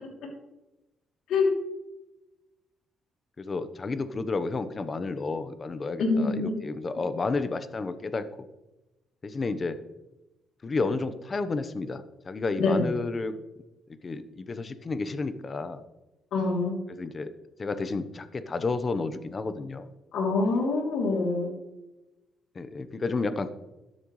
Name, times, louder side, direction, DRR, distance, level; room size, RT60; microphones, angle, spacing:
voice 1, 3.4-8.5 9.2-9.8 10.6-13.4 14.0-15.8 17.0-17.3 17.6-19.9 22.5-23.5, left 3 dB, 35° left, 11 dB, 1.0 m, -31 dB
voice 2, 6.0-6.5 12.6-12.9 16.3-16.7 20.1-21.5, left 3 dB, 80° left, 0 dB, 3.0 m, -25 dB
13.5 x 10.5 x 3.2 m, 1.0 s
cardioid pair, 90°, 0 cm